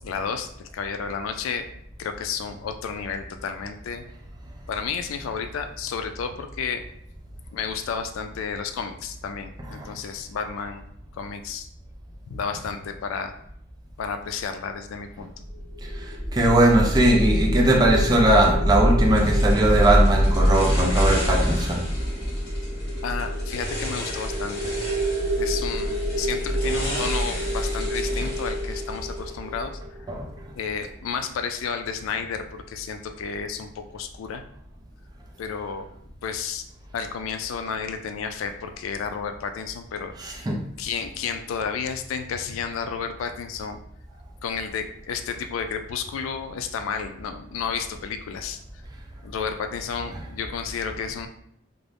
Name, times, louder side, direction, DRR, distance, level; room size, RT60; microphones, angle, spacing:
voice 1, 0.0-1.7 2.0-4.0 4.7-6.8 7.5-10.8 11.1-11.7 12.3-13.4 14.0-15.4 23.0-24.7 25.4-29.8 30.6-34.4 35.4-35.9 36.2-36.6 36.9-40.4 40.8-43.8 44.4-48.6 49.2-51.3, left 6 dB, 85° left, 7 dB, 0.3 m, -32 dB
sound 1, 15.4-30.6, equal, ahead, 1.1 m, -25 dB
voice 2, 16.3-21.8 30.1-30.2 40.2-40.6, right 1 dB, 20° right, -1 dB, 0.4 m, -20 dB
sound 2, 19.1-29.2, left 1 dB, 50° left, 0.9 m, -35 dB
2.5 x 2.0 x 3.2 m, 0.69 s
head